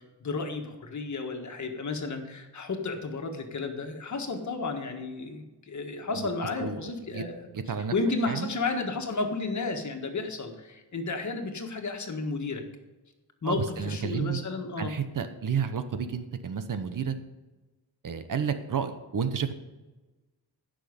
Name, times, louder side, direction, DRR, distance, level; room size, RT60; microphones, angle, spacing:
voice 1, 0.0-7.5 7.9-12.6 13.4-14.9, left 3 dB, 45° left, 4 dB, 1.6 m, -32 dB
voice 2, 6.6-7.2 7.5-7.9 8.3-8.5 13.4-14.4 14.8-17.1 18.0-19.5, right 7 dB, 55° right, 9 dB, 1.0 m, -31 dB
16.0 x 6.4 x 5.2 m, 1.1 s
wide cardioid pair, 140°, 39 cm